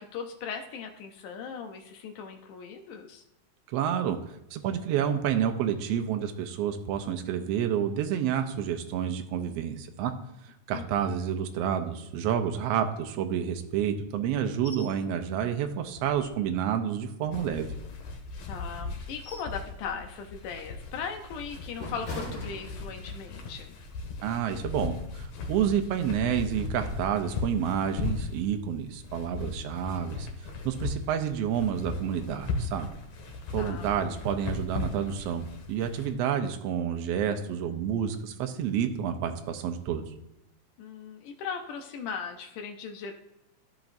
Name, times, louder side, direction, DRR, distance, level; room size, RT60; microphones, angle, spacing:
voice 1, 0.0-3.2 10.7-11.1 18.5-23.8 33.6-33.9 40.8-43.1, left 6 dB, 80° left, 4 dB, 2.2 m, -38 dB
voice 2, 3.7-4.2 4.5-10.1 10.4-17.7 24.2-32.9 33.5-40.1, right 9 dB, 80° right, 6 dB, 1.4 m, -29 dB
sound 1, 14.6-15.0 15.3-15.4 15.9-16.7 17.2-18.2 18.8-19.6 20.0-20.3 20.8-23.3 23.6-23.9, left 1 dB, 40° left, 2.3 m, -42 dB
sound 2, 17.3-36.1, left 3 dB, 60° left, 2.2 m, -37 dB
13.5 x 5.9 x 2.6 m, 0.89 s
omnidirectional pair, 3.5 m